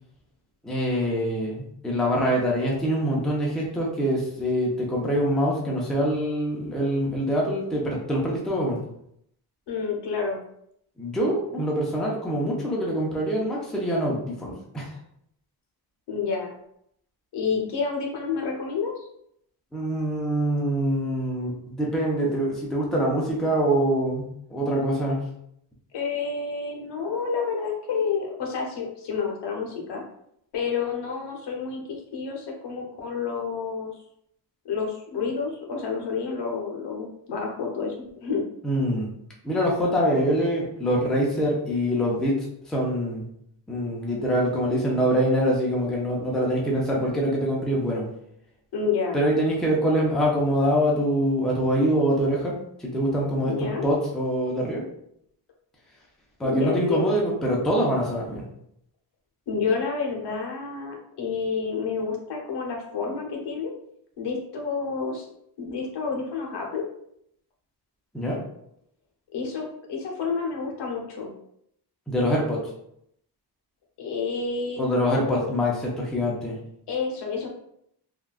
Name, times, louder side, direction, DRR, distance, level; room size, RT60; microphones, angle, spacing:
voice 1, 0.6-8.8 11.0-15.0 19.7-25.3 38.6-39.1 39.4-43.2 43.7-48.1 49.1-54.8 56.4-58.4 68.1-68.4 72.1-72.7 74.8-76.6, equal, ahead, -3 dB, 0.4 m, -24 dB
voice 2, 9.7-10.4 16.1-16.5 17.3-19.1 25.9-30.0 30.5-33.9 34.6-38.4 48.7-49.2 53.4-53.8 56.4-57.2 59.5-63.7 64.2-65.3 65.6-66.8 69.3-71.3 74.0-75.6 76.9-77.5, left 5 dB, 75° left, 0 dB, 0.8 m, -29 dB
3.6 x 2.2 x 2.3 m, 0.72 s
wide cardioid pair, 175°, 41 cm